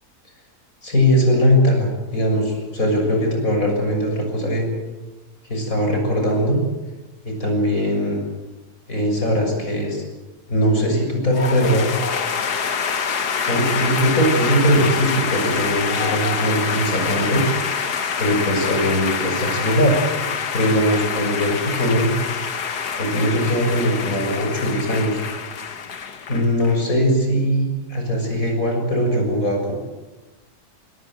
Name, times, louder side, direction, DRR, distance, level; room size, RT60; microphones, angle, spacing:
voice 1, 0.8-4.7 5.5-6.6 7.3-8.3 8.9-10.0 10.5-12.0 13.4-17.4 18.2-20.0 20.5-22.1 22.6-22.7 23.0-25.2 26.3-29.7, equal, 60° left, 2 dB, 7.1 m, -20 dB
sound 1, 11.3-26.8, left 6 dB, 90° left, 2.0 m, -26 dB
24.5 x 22.5 x 7.9 m, 1.1 s
omnidirectional pair, 1.6 m